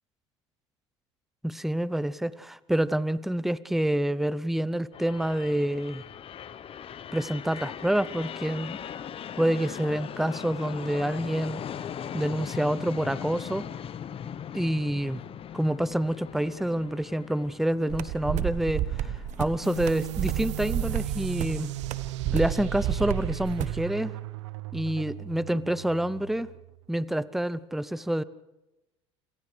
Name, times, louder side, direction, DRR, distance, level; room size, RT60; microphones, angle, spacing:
voice 1, 1.4-6.0 7.1-8.8 9.4-11.6 12.1-13.6 14.5-15.2 15.5-21.7 22.3-24.1 24.7-26.5 26.9-28.2, right 1 dB, ahead, 18 dB, 0.7 m, -27 dB
sound 1, 4.9-21.1, left 8 dB, 40° left, 1.0 m, -40 dB
sound 2, 17.9-23.8, right 11 dB, 55° right, 1.2 m, -31 dB
sound 3, 19.6-26.9, right 16 dB, 80° right, 0.6 m, -37 dB
28.0 x 27.5 x 3.4 m, 1.0 s
hypercardioid pair, 75°, 15 cm